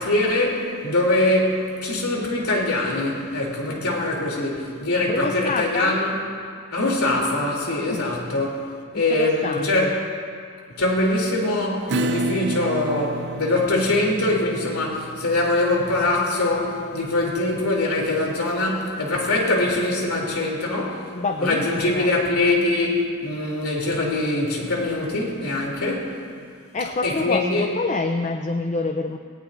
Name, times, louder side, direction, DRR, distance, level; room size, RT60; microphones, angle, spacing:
voice 1, 0.0-6.2 6.7-8.7 8.9-9.9 10.8-21.1 21.4-26.1 27.0-27.7, left 2 dB, 85° left, -2 dB, 3.1 m, -23 dB
voice 2, 5.0-6.0 7.9-8.1 9.1-9.9 21.1-22.1 26.7-29.2, left 3 dB, 30° left, 5 dB, 0.5 m, -26 dB
Acoustic guitar / Strum, 11.9-19.1, right 2 dB, 50° right, 0.5 m, -32 dB
20.0 x 18.0 x 2.6 m, 2.2 s
head